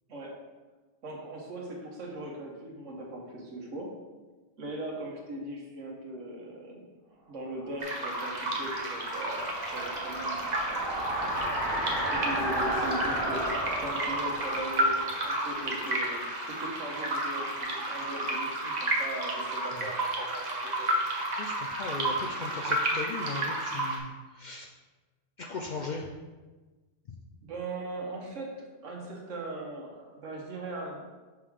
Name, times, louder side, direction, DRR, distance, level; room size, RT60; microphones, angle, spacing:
voice 1, 1.0-3.9 4.6-6.9 7.3-10.9 12.0-21.0 27.4-28.6 28.8-31.1, right 2 dB, 85° right, -1 dB, 1.5 m, -39 dB
sound 1, 7.6-16.4, right 1 dB, 90° left, 2.6 m, -34 dB
sound 2, 7.8-24.0, right 1 dB, 40° right, 0.9 m, -32 dB
voice 2, 21.4-24.7 25.4-26.1, left 3 dB, 60° left, 1 dB, 0.5 m, -38 dB
5.9 x 3.6 x 4.8 m, 1.3 s
omnidirectional pair, 1.2 m